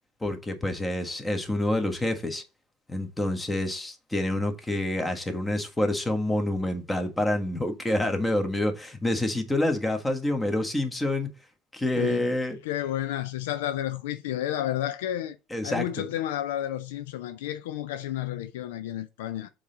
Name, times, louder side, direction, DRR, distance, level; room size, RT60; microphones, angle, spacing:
voice 1, 0.2-2.4 2.9-11.3 11.7-12.6 15.5-15.9, left 1 dB, 10° left, 1.4 m, -27 dB
voice 2, 12.0-12.3 12.6-15.4 15.6-19.5, left 12 dB, 65° left, 0.4 m, -31 dB
7.0 x 4.0 x 4.1 m
figure-of-eight pair, 70°, 0 cm